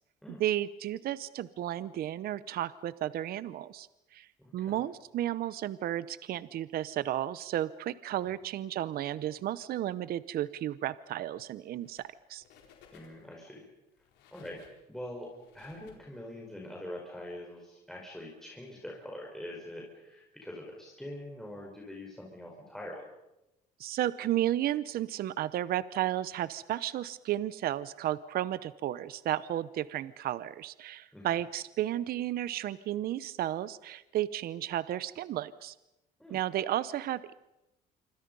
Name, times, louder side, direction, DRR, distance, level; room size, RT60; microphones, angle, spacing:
voice 1, 0.4-3.9 4.1-4.3 4.5-12.4 23.8-35.7 36.3-37.3, right 13 dB, 65° right, 17 dB, 0.8 m, -33 dB
voice 2, 4.4-4.8 8.3-8.4 12.9-13.7 14.3-14.6 14.9-15.3 15.5-23.1 31.1-31.4 36.2-36.4, left 1 dB, ahead, -2 dB, 4.9 m, -44 dB
sound 1, 11.7-12.2 12.4-13.4 13.9-16.6, left 7 dB, 90° left, 4.2 m, -60 dB
27.0 x 25.0 x 5.4 m, 0.91 s
cardioid pair, 110°, 17 cm